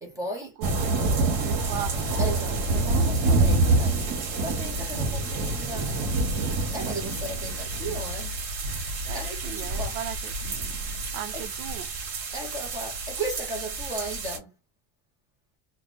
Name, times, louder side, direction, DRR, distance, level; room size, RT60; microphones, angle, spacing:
voice 1, 0.0-0.6 2.2-4.0 4.4-6.2 6.7-8.4 9.1-10.0 11.3-11.5 12.3-14.5, right 1 dB, 5° right, 0.7 m, -36 dB
sound 1, 0.6-14.4, right 3 dB, 50° right, 1.5 m, -27 dB
voice 2, 0.6-2.0 9.1-10.4 11.1-11.9, right 11 dB, 80° right, 0.7 m, -37 dB
3.6 x 2.2 x 3.9 m
cardioid pair, 175°, 45 cm